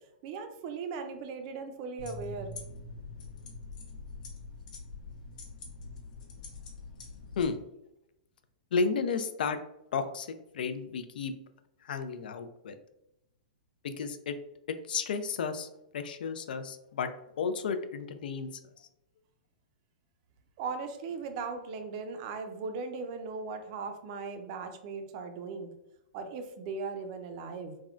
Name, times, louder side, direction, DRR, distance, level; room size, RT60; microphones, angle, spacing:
voice 1, 0.2-2.5 20.6-25.7 26.1-27.8, right 4 dB, 40° right, 6 dB, 0.4 m, -38 dB
sound 1, 2.0-7.5, left 3 dB, 55° left, 0.8 m, -44 dB
voice 2, 8.7-9.6 9.9-11.3 11.8-12.8 13.8-14.4 14.9-15.7 15.9-18.5 18.8-18.9, left 5 dB, 75° left, 9 dB, 0.4 m, -33 dB
3.5 x 2.1 x 2.4 m, 0.85 s
hypercardioid pair, 145°, 5 cm